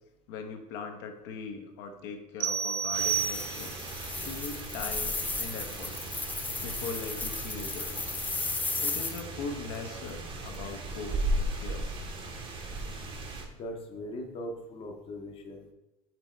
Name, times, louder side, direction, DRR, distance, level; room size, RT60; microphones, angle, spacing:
voice 1, 0.3-3.8 4.2-6.0 6.6-8.2 8.8-11.9, left 5 dB, 60° left, 4 dB, 0.8 m, -40 dB
sound 1, 2.4-3.9, right 8 dB, 70° right, 0.6 m, -30 dB
sound 2, 2.9-9.2, left 3 dB, 10° left, 0.3 m, -35 dB
sound 3, 2.9-13.5, right 1 dB, 25° right, 0.8 m, -37 dB
voice 2, 13.5-15.7, left 1 dB, 30° left, 2 dB, 0.8 m, -40 dB
6.0 x 4.0 x 4.4 m, 1.0 s
cardioid pair, 145°, 20 cm